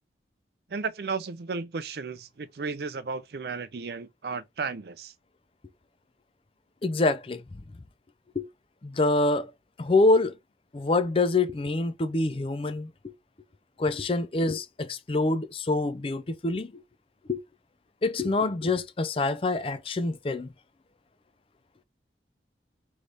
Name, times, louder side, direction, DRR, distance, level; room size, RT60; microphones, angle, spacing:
voice 1, 0.7-5.1, right 4 dB, 60° right, 0.5 m, -34 dB
voice 2, 6.8-7.4 8.4-8.5 8.8-9.5 9.8-10.3 10.7-12.9 13.8-16.7 17.3-17.4 18.0-20.5, left 2 dB, 30° left, 0.4 m, -25 dB
3.4 x 3.1 x 3.9 m
head